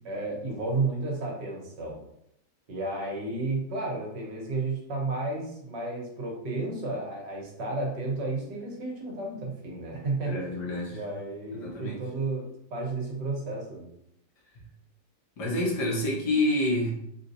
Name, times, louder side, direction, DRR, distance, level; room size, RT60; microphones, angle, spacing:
voice 1, 0.1-2.0 2.7-10.5 10.9-13.9, right 3 dB, 75° right, -1 dB, 1.8 m, -32 dB
voice 2, 10.3-11.0 11.6-12.0 15.4-16.9, left 1 dB, 70° left, -3 dB, 1.9 m, -28 dB
4.4 x 4.3 x 2.7 m, 0.75 s
omnidirectional pair, 1.9 m